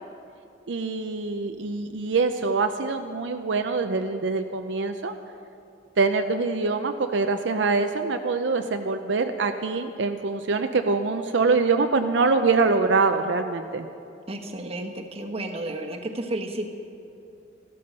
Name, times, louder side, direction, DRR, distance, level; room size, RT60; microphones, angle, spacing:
voice 1, 0.7-5.2 6.0-13.9, right 4 dB, 70° right, 6 dB, 0.6 m, -24 dB
voice 2, 14.3-16.7, right 1 dB, 35° right, 3 dB, 1.2 m, -32 dB
14.5 x 13.0 x 5.5 m, 2.7 s
head